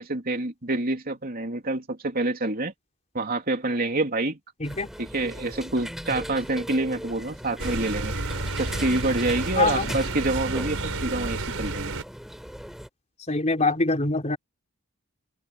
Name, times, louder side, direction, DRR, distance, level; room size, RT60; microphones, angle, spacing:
voice 1, 0.0-2.7 3.1-4.4 5.0-8.1 8.6-11.9, right 2 dB, 40° right, 3.3 m, -27 dB
sound 1, 4.6-12.9, equal, ahead, 4.7 m, -39 dB
sound 2, 7.6-12.0, right 2 dB, 70° right, 5.4 m, -31 dB
voice 2, 9.6-10.0 13.3-14.4, left 3 dB, 30° left, 3.5 m, -24 dB
open air
head